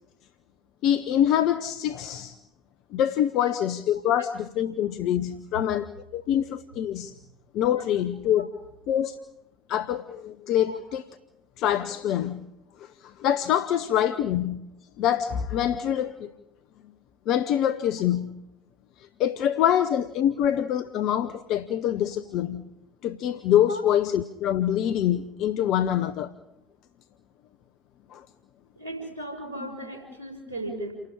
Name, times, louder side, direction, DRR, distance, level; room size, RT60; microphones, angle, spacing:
voice 1, 0.8-2.4 2.9-7.1 7.5-8.5 8.9-9.2 9.7-11.0 11.6-12.4 13.0-14.6 15.0-16.3 17.3-18.3 19.2-22.6 23.0-26.3 28.1-28.2, left 10 dB, 50° left, 0.8 m, -25 dB
voice 2, 28.8-30.9, right 1 dB, 85° left, 5.5 m, -36 dB
29.0 x 12.5 x 9.9 m
figure-of-eight pair, 65°, 0 cm